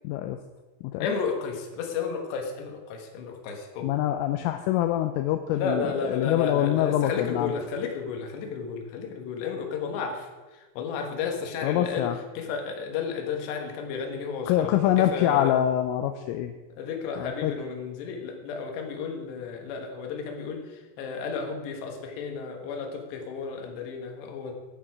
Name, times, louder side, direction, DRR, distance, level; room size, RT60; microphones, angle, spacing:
voice 1, 0.0-0.4 0.8-1.1 3.8-7.5 11.6-12.2 14.5-16.5 17.1-17.5, left 12 dB, 85° left, 7 dB, 3.1 m, -25 dB
voice 2, 1.0-3.9 5.5-15.5 16.8-24.5, left 5 dB, 65° left, 3 dB, 3.3 m, -33 dB
11.0 x 10.0 x 4.8 m, 1.2 s
omnidirectional pair, 5.9 m